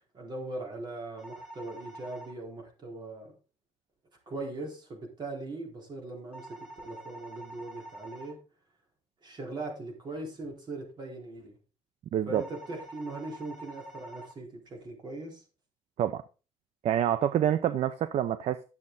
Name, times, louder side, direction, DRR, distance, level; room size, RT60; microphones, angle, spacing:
voice 1, 0.0-3.3 4.3-8.4 9.2-11.6 12.3-15.4, right 2 dB, 35° right, 4.2 m, -40 dB
sound 1, 1.2-2.3 6.3-8.3 12.3-14.3, right 1 dB, 5° right, 4.4 m, -46 dB
voice 2, 12.1-12.4 16.0-16.2 16.8-18.6, right 10 dB, 60° right, 0.6 m, -27 dB
11.0 x 7.4 x 4.0 m
cardioid pair, 135°, 12 cm